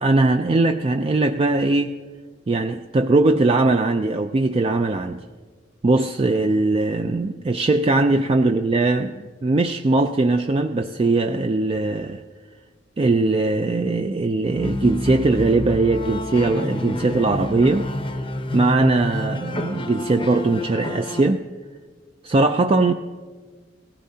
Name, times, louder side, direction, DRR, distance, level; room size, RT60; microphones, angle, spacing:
voice 1, 0.0-1.9 2.5-5.2 5.8-12.2 13.0-17.9 18.5-21.4 22.2-22.9, right 2 dB, 30° right, 6 dB, 0.3 m, -20 dB
sound 1, 14.4-21.2, left 1 dB, 30° left, 0.6 m, -29 dB
17.5 x 14.5 x 2.8 m, 1.5 s
head